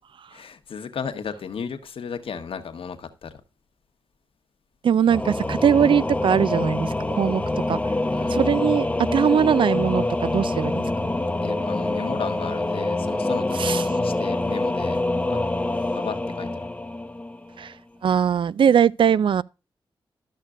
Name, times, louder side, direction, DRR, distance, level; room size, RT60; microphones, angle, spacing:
voice 1, 0.3-3.4 7.8-8.4 11.4-15.0 15.3-15.4 15.9-16.7, left 6 dB, 80° left, 1.1 m, -35 dB
voice 2, 4.8-7.4 7.7-7.8 8.3-11.1 13.6-13.8 17.6-17.7 18.0-19.4, right 8 dB, 65° right, 0.4 m, -21 dB
Singing / Musical instrument, 5.1-17.6, left 2 dB, 15° left, 0.8 m, -25 dB
12.5 x 6.6 x 2.4 m
cardioid pair, 75°, 9 cm